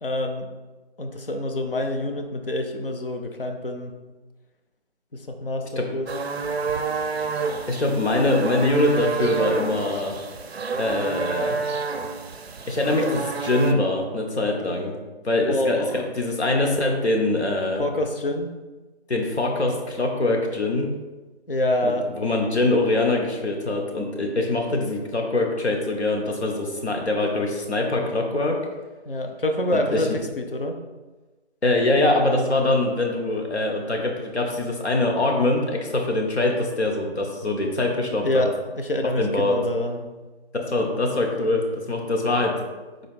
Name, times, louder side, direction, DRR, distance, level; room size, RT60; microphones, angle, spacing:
voice 1, 0.0-0.5 1.0-3.9 5.3-6.1 15.5-16.1 17.8-18.5 21.5-22.1 29.1-30.8 38.2-40.1, left 1 dB, 60° left, 4 dB, 0.5 m, -26 dB
sound 1, 6.1-13.7, right 4 dB, 70° right, 0.5 m, -28 dB
voice 2, 7.7-10.1 10.8-11.6 12.7-14.9 15.2-17.9 19.1-20.9 21.8-28.6 29.7-30.0 31.6-38.4 39.2-39.6 40.7-42.6, left 2 dB, 85° left, 1 dB, 0.9 m, -23 dB
3.9 x 2.5 x 3.4 m, 1.2 s
figure-of-eight pair, 175°, 32 cm